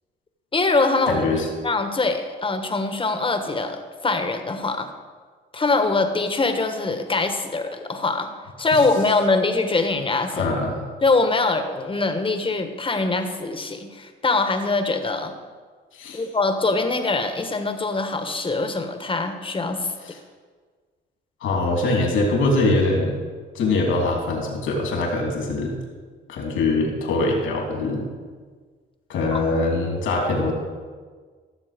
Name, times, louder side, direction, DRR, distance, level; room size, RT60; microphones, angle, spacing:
voice 1, 0.5-1.2 1.6-4.9 5.5-8.3 8.6-10.5 11.0-15.3 16.1-19.9 29.3-29.4, left 3 dB, 25° left, 7 dB, 1.4 m, -23 dB
voice 2, 1.1-1.5 10.3-10.8 15.9-16.2 20.0-20.2 21.4-23.1 23.5-25.7 26.3-28.1 29.1-30.5, left 2 dB, 85° left, 1 dB, 3.2 m, -23 dB
15.5 x 7.1 x 5.2 m, 1.5 s
cardioid pair, 90°, 20 cm